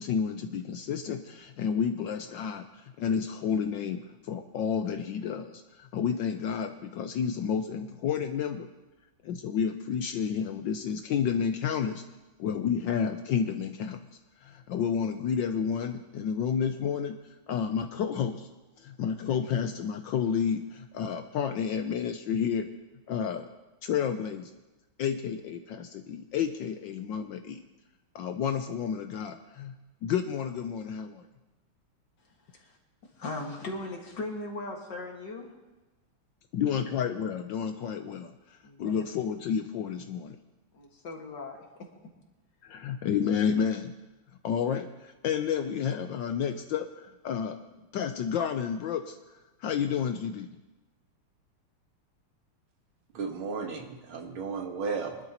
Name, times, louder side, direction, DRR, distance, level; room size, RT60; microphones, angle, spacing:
voice 1, 0.0-2.7 3.0-8.7 9.2-12.0 12.4-14.0 14.4-17.2 17.5-18.5 18.8-22.7 23.1-23.5 23.8-24.5 25.0-27.6 28.1-29.8 30.0-31.2 36.5-40.4 42.6-43.9 44.4-47.6 47.9-49.2 49.6-50.5, left 7 dB, 70° left, 7 dB, 1.2 m, -30 dB
voice 2, 33.2-35.5 36.8-36.9 38.6-39.0 40.7-41.6, left 2 dB, 55° left, 1 dB, 2.3 m, -38 dB
voice 3, 53.1-55.3, right 5 dB, 75° right, 3 dB, 2.2 m, -34 dB
23.5 x 12.0 x 2.9 m, 1.1 s
omnidirectional pair, 2.3 m